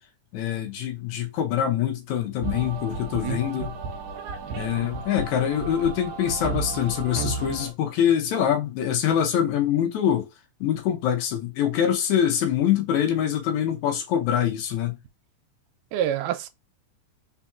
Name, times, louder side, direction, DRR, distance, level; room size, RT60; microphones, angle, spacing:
voice 1, 0.3-3.8 4.6-10.3 10.6-15.0, left 9 dB, 75° left, 2.1 m, -24 dB
sound 1, 2.4-7.7, right 4 dB, 75° right, 1.9 m, -33 dB
voice 2, 4.5-4.8 15.9-16.5, right 10 dB, 90° right, 2.2 m, -28 dB
4.5 x 4.1 x 2.3 m
omnidirectional pair, 3.6 m